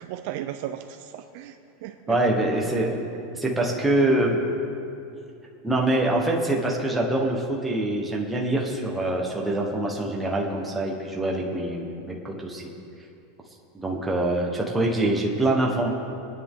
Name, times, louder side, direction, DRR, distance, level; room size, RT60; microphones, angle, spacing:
voice 1, 0.0-2.2, right 11 dB, 45° right, 7 dB, 0.5 m, -36 dB
voice 2, 2.1-3.0 3.3-4.4 5.6-12.6 13.8-15.9, right 1 dB, 5° right, -2 dB, 1.3 m, -24 dB
25.5 x 9.8 x 3.8 m, 2.7 s
supercardioid pair, 175°, 0 cm